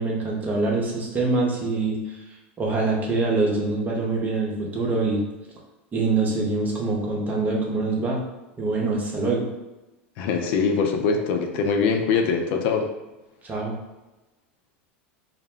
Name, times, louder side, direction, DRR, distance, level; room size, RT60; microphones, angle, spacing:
voice 1, 0.0-2.2 2.6-5.2 5.9-8.2 8.6-9.4 13.4-13.7, right 3 dB, 25° right, -2 dB, 0.8 m, -24 dB
voice 2, 10.2-12.9, left 5 dB, 60° left, 4 dB, 0.4 m, -23 dB
2.1 x 2.0 x 3.6 m, 1.0 s
hypercardioid pair, 95°, 6 cm